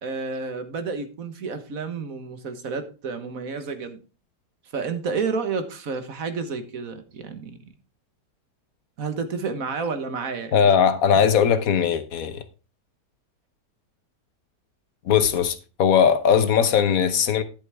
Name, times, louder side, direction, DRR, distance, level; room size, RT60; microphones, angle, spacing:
voice 1, 0.0-4.0 4.7-7.6 9.0-10.6, right 4 dB, 55° right, 1.7 m, -30 dB
voice 2, 10.5-12.4 15.0-17.4, left 7 dB, 60° left, 1.3 m, -19 dB
11.0 x 8.0 x 3.5 m
omnidirectional pair, 1.8 m